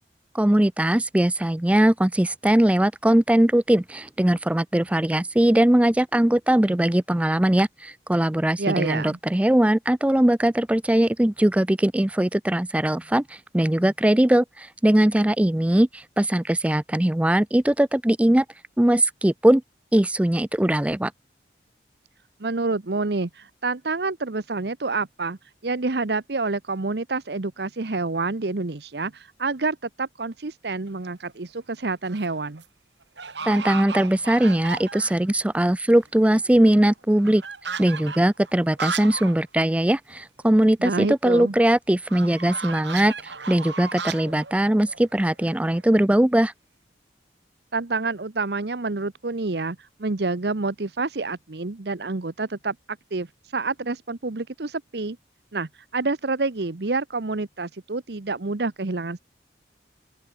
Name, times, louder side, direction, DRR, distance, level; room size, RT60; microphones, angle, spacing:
voice 1, 0.3-18.4 18.8-19.6 19.9-21.1 33.4-37.4 37.8-46.5, right 1 dB, 5° right, 0.3 m, -20 dB
voice 2, 8.6-9.2 22.4-32.6 40.8-41.6 47.7-52.7 53.1-53.3 53.5-55.2 55.5-59.2, right 3 dB, 65° right, 0.9 m, -28 dB
sound 1, 30.9-31.3 31.8-32.3 32.6-32.7 33.2-35.4 35.7-35.8 36.0-39.4 39.7-39.8 40.1-40.2 42.1-45.8, right 5 dB, 80° right, 5.1 m, -35 dB
open air
head